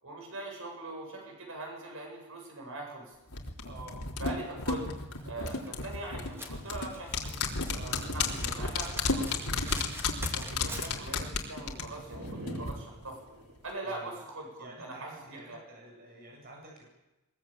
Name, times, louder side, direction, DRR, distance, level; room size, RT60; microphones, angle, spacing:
voice 1, 0.0-3.1 4.2-4.9 5.2-7.4 7.7-9.8 10.3-13.2 13.6-15.6, right 2 dB, 65° right, 1 dB, 7.9 m, -42 dB
sound 1, 3.3-12.7 13.0-13.1, left 4 dB, 85° left, 3.8 m, -33 dB
voice 2, 3.6-4.0 13.8-14.1 14.6-16.9, right 2 dB, 45° right, 0 dB, 7.9 m, -49 dB
Domestic sounds home sounds, 5.2-11.2, right 1 dB, 10° right, 3.0 m, -47 dB
sound 2, 7.4-9.2 12.1-13.7, right 1 dB, 90° right, 5.4 m, -44 dB
22.5 x 22.0 x 8.9 m, 1.0 s
head